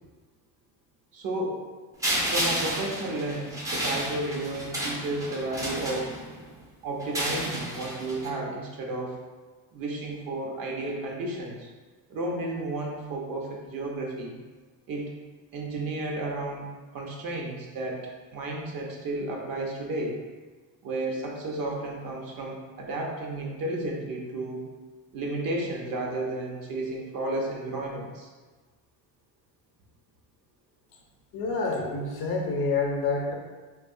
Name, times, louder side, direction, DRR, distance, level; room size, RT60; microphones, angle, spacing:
voice 1, 1.1-1.6 2.2-6.1 6.8-9.2 9.7-11.7 12.1-14.3 14.9-15.1 15.5-16.7 16.9-20.2 20.8-24.6 25.1-28.3, right 2 dB, 50° right, -1 dB, 0.8 m, -32 dB
sound 1, 2.0-6.5 7.0-8.3, right 1 dB, 10° right, 0.5 m, -31 dB
voice 2, 31.3-33.3, left 3 dB, 60° left, 1 dB, 0.7 m, -27 dB
3.1 x 2.3 x 2.6 m, 1.3 s
supercardioid pair, 90°, 43 cm